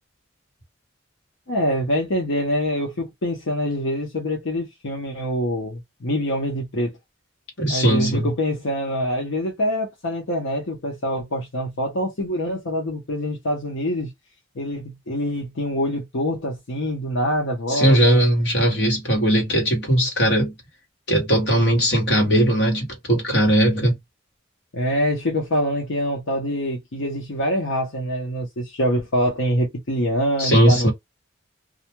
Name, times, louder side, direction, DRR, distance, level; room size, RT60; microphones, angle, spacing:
voice 1, 1.5-6.9 7.7-14.1 14.6-18.2 24.7-30.9, equal, 80° left, 0.8 m, -25 dB
voice 2, 7.6-8.3 17.7-20.5 21.1-24.0 30.4-30.9, right 1 dB, 60° left, 1.3 m, -19 dB
2.4 x 2.2 x 2.9 m
head